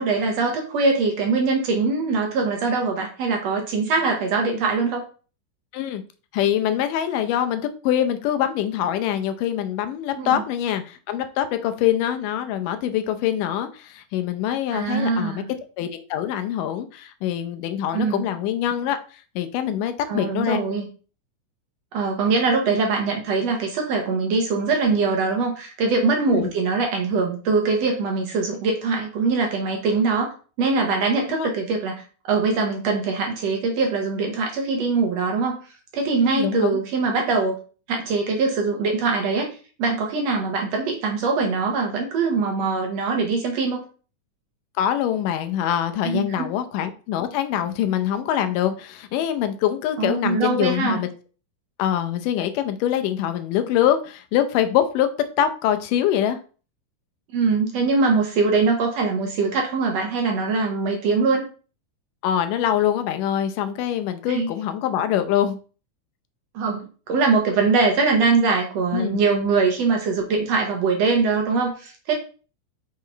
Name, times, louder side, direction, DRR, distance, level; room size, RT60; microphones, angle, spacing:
voice 1, 0.0-5.0 10.2-10.4 14.7-15.5 17.9-18.3 20.1-20.9 21.9-30.3 30.6-35.6 35.9-37.6 37.9-43.8 46.0-46.5 50.0-51.0 57.3-61.5 64.3-64.5 66.5-72.1, right 4 dB, 65° right, 2 dB, 1.9 m, -22 dB
voice 2, 6.3-15.4 15.8-19.0 19.4-20.6 26.3-26.5 31.3-31.5 36.2-36.8 44.8-51.1 51.8-56.4 62.2-65.6 68.9-69.2, left 10 dB, 85° left, 8 dB, 2.3 m, -24 dB
6.2 x 3.7 x 4.4 m, 0.37 s
omnidirectional pair, 3.7 m